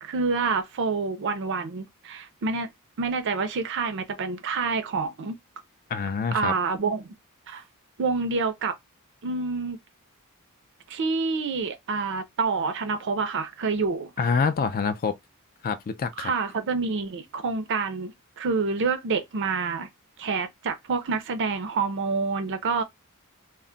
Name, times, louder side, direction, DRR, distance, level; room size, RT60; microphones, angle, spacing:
voice 1, 0.0-2.7 3.0-5.4 6.3-7.1 7.5-7.6 8.0-8.7 9.2-9.8 10.9-14.1 16.2-19.9 20.2-22.8, right 4 dB, 55° right, 0.5 m, -27 dB
voice 2, 5.9-6.5 14.2-15.2 15.6-16.3, left 5 dB, 40° left, 0.4 m, -26 dB
2.2 x 2.1 x 3.7 m
head